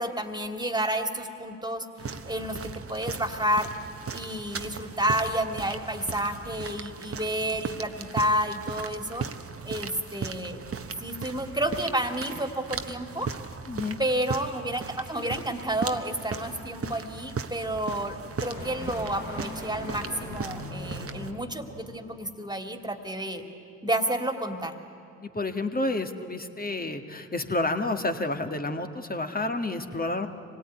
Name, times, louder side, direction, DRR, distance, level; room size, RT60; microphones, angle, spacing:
voice 1, 0.0-1.9 2.2-3.7 4.1-9.3 9.6-10.6 11.0-13.3 14.0-23.4 23.8-24.8, right 1 dB, 10° right, 6 dB, 2.6 m, -30 dB
sound 1, 2.0-21.3, right 5 dB, 40° right, 1.2 m, -37 dB
sound 2, 8.6-22.0, left 2 dB, 85° left, 3.7 m, -44 dB
voice 2, 13.7-14.0 25.2-30.3, left 2 dB, 25° left, 6 dB, 1.9 m, -30 dB
24.5 x 18.0 x 9.6 m, 2.5 s
hypercardioid pair, 45°, 36 cm